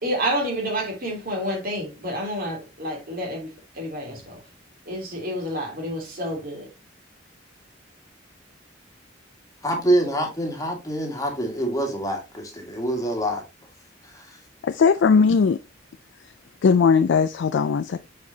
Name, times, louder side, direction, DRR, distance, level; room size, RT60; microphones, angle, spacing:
voice 1, 0.0-4.4 4.9-6.7, equal, 50° right, 3.1 m, -29 dB
voice 2, 9.6-13.4 14.0-14.4, right 1 dB, 20° left, 1.9 m, -26 dB
voice 3, 14.6-15.6 16.6-18.0, left 5 dB, 65° left, 0.4 m, -18 dB
7.3 x 4.8 x 2.8 m
head